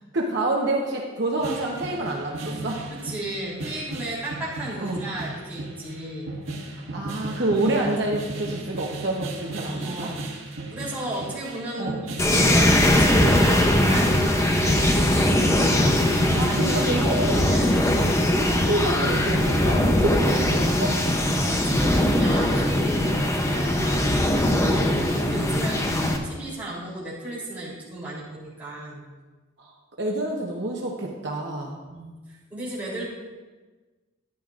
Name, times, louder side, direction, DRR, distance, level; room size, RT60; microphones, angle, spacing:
voice 1, 0.1-2.8 4.8-5.0 6.9-10.1 11.8-12.0 14.2-15.1 15.5-15.7 16.4-17.5 18.3-21.0 23.1-23.3 24.6-25.0 29.6-31.7, right 2 dB, 55° right, -2 dB, 1.0 m, -28 dB
sound 1, 1.4-21.1, right 2 dB, 70° right, 1.7 m, -36 dB
voice 2, 3.0-6.3 9.6-10.3 10.7-15.0 16.2-18.4 21.4-24.2 25.1-29.1 31.9-32.1 32.5-33.1, right 1 dB, 10° right, -8 dB, 3.3 m, -34 dB
sound 2, 12.2-26.2, left 1 dB, 15° left, 0.7 m, -21 dB
12.5 x 10.5 x 2.5 m, 1.3 s
head